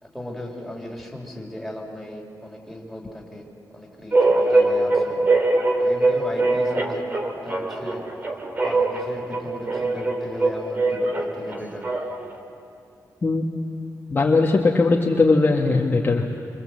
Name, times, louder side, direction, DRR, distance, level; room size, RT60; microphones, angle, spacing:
voice 1, 0.0-3.5 3.7-5.2 5.8-7.1 7.4-8.0 8.6-11.8, left 1 dB, ahead, 0 dB, 3.5 m, -36 dB
sound 1, 4.1-12.3, right 2 dB, 25° right, 2.2 m, -22 dB
voice 2, 14.1-16.2, left 3 dB, 30° left, 0 dB, 1.4 m, -19 dB
26.5 x 25.0 x 7.7 m, 2.5 s
wide cardioid pair, 150°, 7 cm